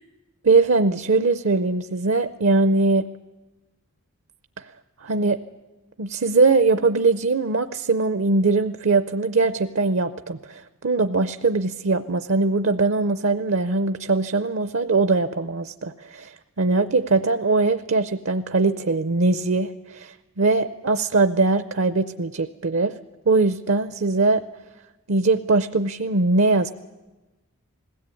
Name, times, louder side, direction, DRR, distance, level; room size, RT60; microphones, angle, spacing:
voice 1, 0.4-3.0 4.6-4.7 5.0-5.4 6.0-22.9 23.3-24.4 25.1-26.7, right 3 dB, 65° right, 10 dB, 0.6 m, -21 dB
21.0 x 16.5 x 8.4 m, 1.1 s
head